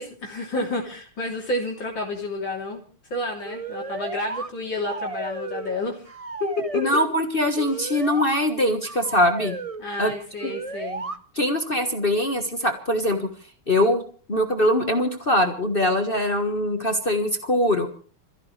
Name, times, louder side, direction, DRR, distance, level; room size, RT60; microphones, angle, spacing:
voice 1, 0.0-2.8 3.1-6.0 6.4-6.8 9.8-11.1, left 2 dB, 55° left, -2 dB, 3.9 m, -30 dB
sound 1, 3.4-4.5 4.8-5.8 6.1-7.1 7.6-8.4 8.8-9.8 10.4-11.2, right 4 dB, 65° right, 0.3 m, -33 dB
voice 2, 6.7-9.6 10.0-10.1 10.4-10.5 11.3-13.3 13.7-14.0 14.3-17.9, left 1 dB, 30° left, 5 dB, 1.4 m, -22 dB
27.0 x 15.5 x 3.3 m, 0.40 s
omnidirectional pair, 2.4 m